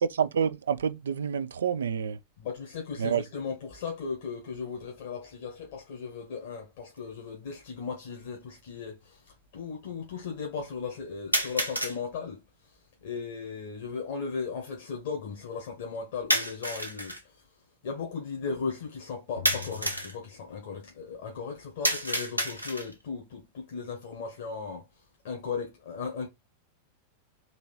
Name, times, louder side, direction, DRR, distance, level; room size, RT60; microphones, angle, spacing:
voice 1, 0.0-2.2 3.0-3.2, right 7 dB, 65° right, 0.4 m, -28 dB
voice 2, 2.4-12.7 13.0-17.4 17.8-26.3, left 5 dB, 55° left, 1.3 m, -37 dB
sound 1, 7.0-7.1 8.0-8.1 11.3-12.0 16.3-17.2 19.5-20.2 21.8-23.0, right 1 dB, 90° right, 0.8 m, -29 dB
sound 2, 19.4-21.2, left 9 dB, 80° left, 0.9 m, -44 dB
4.0 x 3.0 x 4.1 m
figure-of-eight pair, 90°, 0 cm